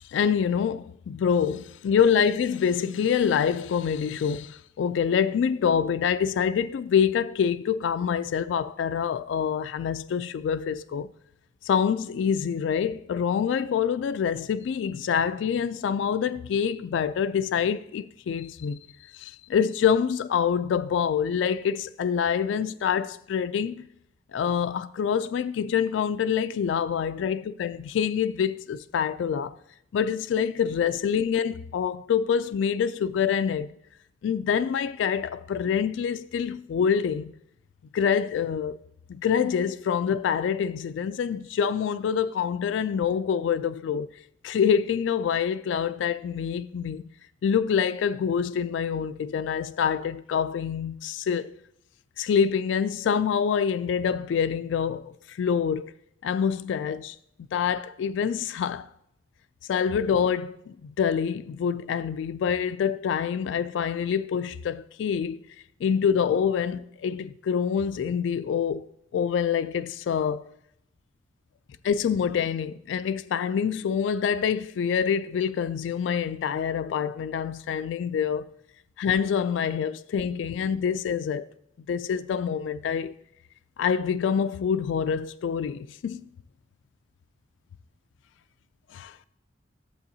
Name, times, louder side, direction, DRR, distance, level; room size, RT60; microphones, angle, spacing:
voice 1, 0.0-11.1 11.6-18.8 19.1-23.9 24.3-29.6 29.9-33.7 34.2-37.3 37.9-38.8 39.1-44.1 44.4-47.1 47.4-51.5 52.2-55.9 56.2-57.2 57.5-58.9 59.7-65.4 65.8-68.9 69.1-70.4 71.8-78.5 79.0-81.4 81.9-83.1 83.8-86.3 88.9-89.1, left 7 dB, 85° left, 0.3 m, -26 dB
11.5 x 7.8 x 2.7 m
head